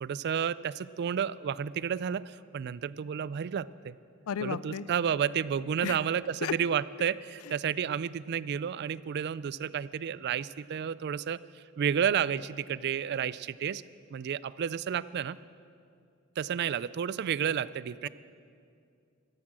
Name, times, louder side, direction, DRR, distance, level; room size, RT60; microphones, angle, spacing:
voice 1, 0.0-4.0 4.4-11.4 11.8-13.8 14.1-15.4 16.4-18.1, right 8 dB, 50° right, 18 dB, 0.3 m, -31 dB
voice 2, 4.3-4.9 5.8-6.0 6.4-6.5, left 7 dB, 80° left, 18 dB, 0.4 m, -33 dB
13.5 x 11.0 x 7.5 m, 2.4 s
head